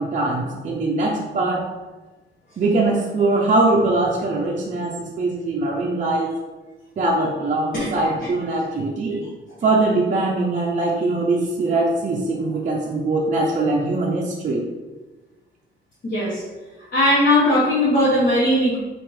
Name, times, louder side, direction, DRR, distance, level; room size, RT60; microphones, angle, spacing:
voice 1, 0.0-1.7 2.6-6.3 7.0-9.2 9.6-14.7, right 2 dB, 40° right, -2 dB, 0.5 m, -22 dB
voice 2, 16.0-16.4 16.9-18.8, left 1 dB, 45° left, -9 dB, 1.2 m, -18 dB
4.5 x 2.5 x 3.1 m, 1.2 s
cardioid pair, 90°, 20 cm